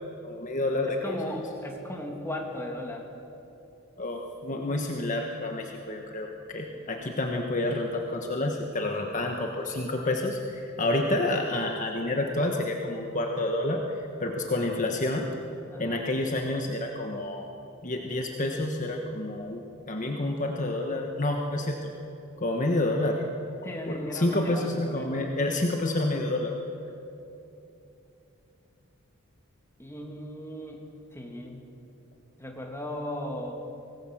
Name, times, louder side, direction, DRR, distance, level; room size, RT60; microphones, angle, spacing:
voice 1, 0.2-1.2 4.0-13.8 14.2-15.3 15.8-17.5 17.8-21.9 22.4-23.2 23.9-26.5, left 2 dB, 40° left, 2 dB, 1.4 m, -29 dB
voice 2, 0.9-3.0 6.7-6.9 15.7-16.0 23.6-25.2 25.5-25.6 29.8-30.9 31.1-31.6 32.4-33.5, left 1 dB, 10° left, 1 dB, 2.4 m, -37 dB
25.0 x 19.0 x 7.5 m, 2.9 s
head